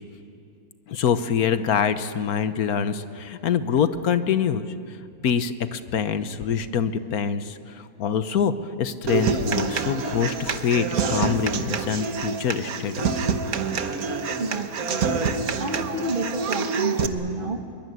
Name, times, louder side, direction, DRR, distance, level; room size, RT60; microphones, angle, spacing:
voice 1, 0.9-4.7 5.2-13.1, left 7 dB, 80° left, 11 dB, 1.5 m, -25 dB
Human voice / Acoustic guitar, 9.1-17.1, right 5 dB, 75° right, 1.6 m, -26 dB
voice 2, 14.4-15.2 15.6-17.6, right 3 dB, 35° right, 6 dB, 1.4 m, -30 dB
23.0 x 22.5 x 9.4 m, 2.5 s
omnidirectional pair, 1.6 m